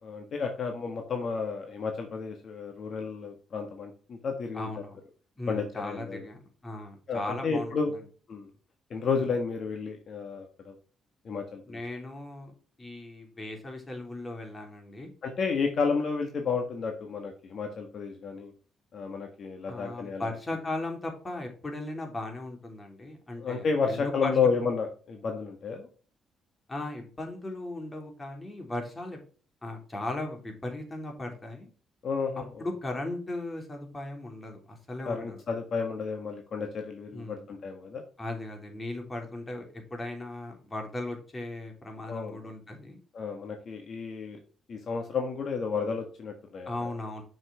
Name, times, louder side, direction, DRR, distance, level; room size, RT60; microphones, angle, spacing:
voice 1, 0.0-4.7 5.5-6.3 7.1-7.9 8.3-8.5 8.9-10.7 11.2-11.8 15.2-18.5 18.9-20.3 23.4-25.9 32.0-32.5 35.0-38.0 42.1-42.4 43.1-44.4 44.7-46.9, left 5 dB, 55° left, 4 dB, 1.5 m, -31 dB
voice 2, 4.5-5.0 5.4-8.0 9.2-9.3 11.7-15.1 19.7-24.3 26.7-29.2 29.6-31.7 32.6-35.4 37.1-37.5 38.2-43.0 46.6-47.2, left 2 dB, 25° left, 3 dB, 3.3 m, -37 dB
7.2 x 6.6 x 3.5 m, 0.40 s
cardioid pair, 90°, 0 cm